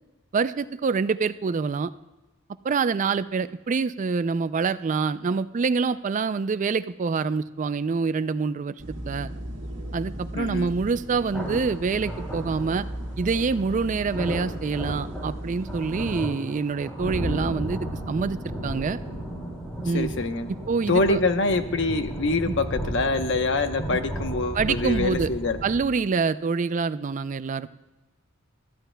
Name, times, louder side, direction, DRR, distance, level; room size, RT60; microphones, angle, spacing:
voice 1, 0.3-1.9 2.6-9.3 9.9-12.8 13.2-18.4 18.6-19.0 19.8-20.1 20.7-21.2 22.5-22.6 23.9-24.0 24.5-25.3 25.6-27.7, right 4 dB, 35° right, 14 dB, 0.4 m, -26 dB
sound 1, 8.8-16.2, equal, 65° right, 2.0 m, -36 dB
voice 2, 10.3-10.7 19.9-20.5 20.9-25.6, left 3 dB, 60° left, 8 dB, 0.9 m, -25 dB
sound 2, 11.3-25.8, equal, 5° left, 2.8 m, -34 dB
22.5 x 13.5 x 2.2 m, 1.1 s
head